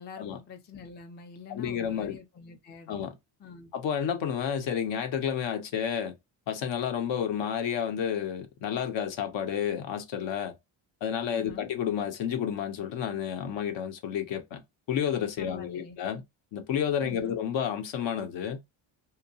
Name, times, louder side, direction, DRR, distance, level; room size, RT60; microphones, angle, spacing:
voice 1, 0.0-3.0 3.4-3.7 11.3-11.7 15.4-16.0 17.0-17.4, left 5 dB, 25° left, 0.3 m, -46 dB
voice 2, 1.5-2.2 2.9-3.1 3.7-6.1 6.5-10.5 11.0-14.6 14.9-16.2 16.5-18.6, left 8 dB, 65° left, 0.7 m, -30 dB
2.8 x 2.1 x 2.6 m
cardioid pair, 130°, 48 cm